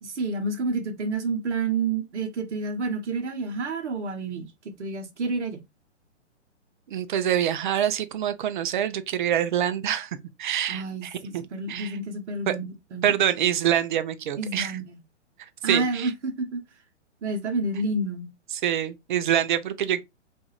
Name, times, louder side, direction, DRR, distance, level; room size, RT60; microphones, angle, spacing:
voice 1, 0.0-4.4 4.8-5.6 10.7-13.1 14.4-15.0 15.6-16.6 17.2-18.3, right 3 dB, 70° right, 1.0 m, -29 dB
voice 2, 6.9-10.1 10.4-11.4 11.7-12.0 12.5-12.6 13.0-14.8 15.6-16.1 18.6-20.0, right 10 dB, 45° right, 0.4 m, -25 dB
2.5 x 2.4 x 3.0 m
hypercardioid pair, 130°, 37 cm